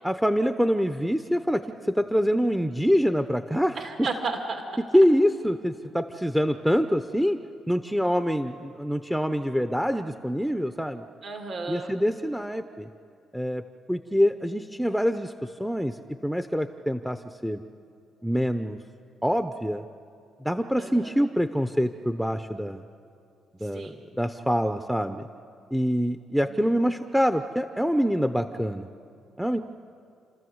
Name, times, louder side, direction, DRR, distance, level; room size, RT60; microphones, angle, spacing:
voice 1, 0.0-4.1 4.8-7.4 7.7-11.0 11.7-12.9 13.3-17.6 18.2-18.8 19.2-19.8 20.4-22.8 23.6-25.2 25.7-28.9 29.4-29.6, equal, ahead, 8 dB, 0.7 m, -25 dB
voice 2, 3.8-4.6 11.2-11.9 20.8-21.2 23.7-24.0 26.5-26.7, right 3 dB, 55° right, 3 dB, 2.4 m, -33 dB
30.0 x 13.5 x 7.9 m, 2.5 s
cardioid pair, 90°, 0 cm